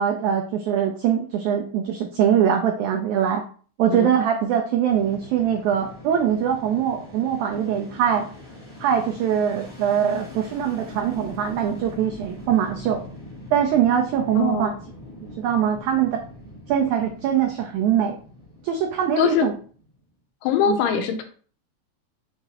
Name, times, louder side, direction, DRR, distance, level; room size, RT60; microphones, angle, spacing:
voice 1, 0.0-3.4 3.8-8.3 8.8-13.0 13.5-14.7 15.4-16.2 16.7-18.2 18.6-19.5 20.7-20.8, right 8 dB, 85° right, 3 dB, 1.7 m, -22 dB
Fixed-wing aircraft airplane, 4.9-20.1, left 1 dB, 45° left, 0.7 m, -42 dB
voice 2, 14.4-14.8 19.2-19.5 20.4-21.2, left 7 dB, 80° left, 7 dB, 2.3 m, -22 dB
5.6 x 3.0 x 2.8 m, 0.43 s
omnidirectional pair, 3.9 m